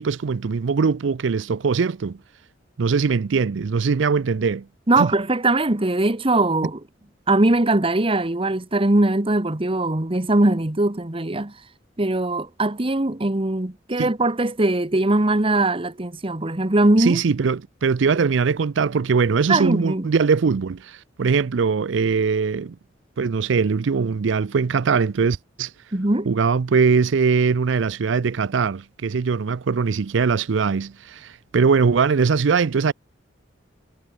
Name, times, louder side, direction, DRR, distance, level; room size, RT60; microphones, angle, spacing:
voice 1, 0.0-2.2 2.8-4.6 4.9-5.1 14.0-14.1 17.0-22.8 23.2-25.7 26.3-32.9, right 5 dB, 80° right, 0.5 m, -21 dB
voice 2, 4.9-6.8 7.3-11.5 12.0-17.2 19.5-20.1 25.9-26.3, right 2 dB, 30° right, 1.3 m, -21 dB
head